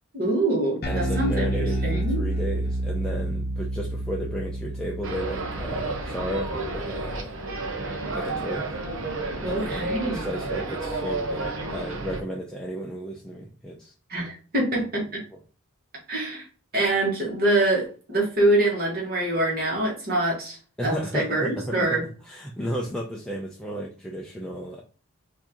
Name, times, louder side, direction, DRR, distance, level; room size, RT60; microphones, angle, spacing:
voice 1, 0.1-2.2 9.4-10.3 14.1-15.2 16.1-16.4 16.7-22.0, right 1 dB, 45° right, -2 dB, 1.7 m, -25 dB
Bass guitar, 0.8-7.3, right 1 dB, 45° left, 0.8 m, -29 dB
voice 2, 0.9-7.4 8.1-8.7 9.4-13.9 15.0-15.4 20.8-22.0 22.2-24.8, equal, 5° left, -3 dB, 0.5 m, -33 dB
sound 1, 5.0-12.2, right 2 dB, 65° right, 0.8 m, -31 dB
4.4 x 2.8 x 2.9 m, 0.38 s
head